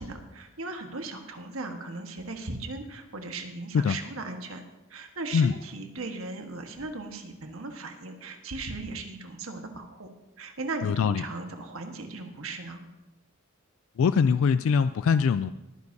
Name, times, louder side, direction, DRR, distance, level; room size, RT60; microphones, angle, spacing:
voice 1, 0.0-4.6 4.9-10.1 10.4-12.8, right 3 dB, 75° right, 5 dB, 1.4 m, -37 dB
voice 2, 10.8-11.2 14.0-15.5, left 6 dB, 70° left, 13 dB, 0.3 m, -22 dB
21.0 x 9.6 x 2.7 m, 1.0 s
head